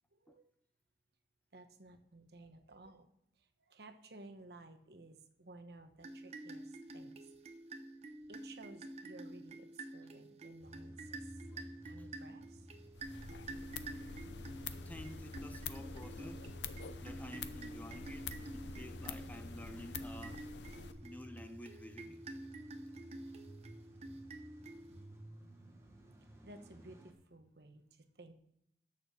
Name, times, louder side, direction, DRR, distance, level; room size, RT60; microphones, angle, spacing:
voice 1, 0.1-0.5 1.5-3.1 3.7-7.2 8.3-11.4 11.9-12.7 26.4-28.3, right 2 dB, 70° right, 1.0 m, -56 dB
sound 1, 6.0-25.2, right 2 dB, 35° right, 0.8 m, -49 dB
Car / Engine starting / Idling, 10.6-27.1, equal, 15° right, 1.3 m, -54 dB
voice 2, 11.5-12.1 13.9-14.2 14.8-16.5 16.9-20.5 21.0-22.2, left 1 dB, 10° left, 0.5 m, -51 dB
sound 2, 13.0-20.9, left 6 dB, 90° left, 0.6 m, -47 dB
7.9 x 6.8 x 6.6 m
head